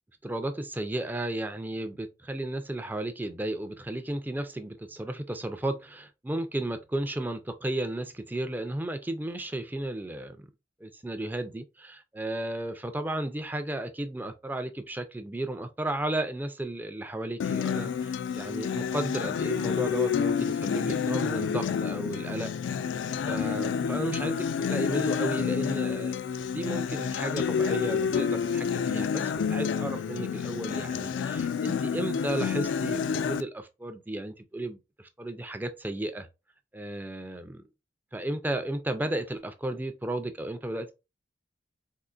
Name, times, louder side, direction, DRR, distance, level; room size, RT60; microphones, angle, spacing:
voice 1, 0.2-10.5 10.8-22.5 23.3-36.3 36.7-37.6 38.1-40.9, right 1 dB, 10° right, 0.4 m, -34 dB
Acoustic guitar, 17.4-33.4, left 7 dB, 70° left, 0.3 m, -29 dB
3.8 x 2.4 x 2.4 m
head